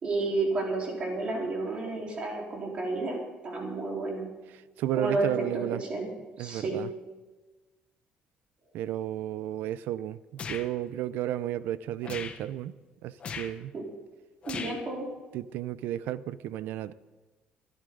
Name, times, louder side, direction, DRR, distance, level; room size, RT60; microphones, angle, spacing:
voice 1, 0.0-4.3 5.0-6.1 6.4-6.8 13.7-13.8 14.4-15.1, right 3 dB, 35° right, -1 dB, 4.1 m, -31 dB
voice 2, 4.8-5.8 6.4-6.9 8.7-12.7 13.0-13.7 15.3-16.9, right 12 dB, 80° right, 16 dB, 0.6 m, -33 dB
sound 1, 10.4-10.7 12.0-12.4 13.2-13.5 14.4-14.8, left 6 dB, 35° left, 1.2 m, -37 dB
24.5 x 11.0 x 4.0 m, 1.2 s
cardioid pair, 150°, 3 cm